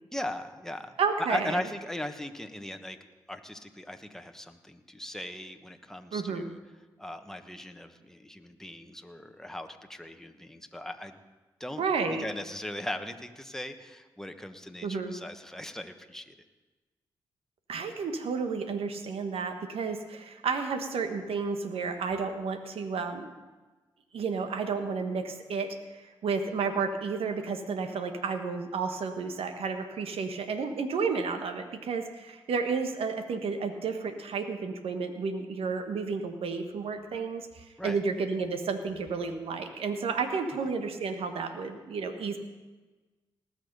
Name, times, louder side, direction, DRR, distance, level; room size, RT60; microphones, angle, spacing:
voice 1, 0.1-3.0 3.3-6.6 7.0-11.2 11.6-16.3 37.8-38.0, left 1 dB, 5° left, 6 dB, 1.3 m, -38 dB
voice 2, 1.0-1.6 6.1-6.5 11.8-12.2 14.8-15.1 17.7-23.3 24.1-42.4, right 5 dB, 75° right, 7 dB, 1.3 m, -31 dB
19.0 x 6.6 x 5.4 m, 1.2 s
supercardioid pair, 40°, 10 cm